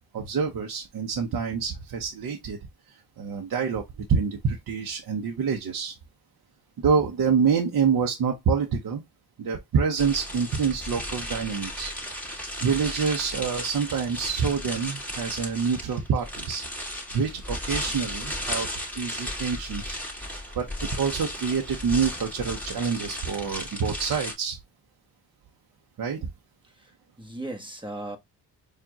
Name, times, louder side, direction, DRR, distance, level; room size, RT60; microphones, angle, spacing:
voice 1, 0.1-2.6 2.9-6.0 6.8-9.0 9.4-11.9 12.6-18.7 18.9-20.0 20.5-24.6 26.0-26.3, right 6 dB, 55° right, 0.9 m, -27 dB
sound 1, 10.0-24.3, left 1 dB, 5° left, 2.0 m, -35 dB
voice 2, 26.6-28.2, right 2 dB, 10° right, 1.3 m, -38 dB
4.5 x 2.5 x 2.8 m
cardioid pair, 65°, 40 cm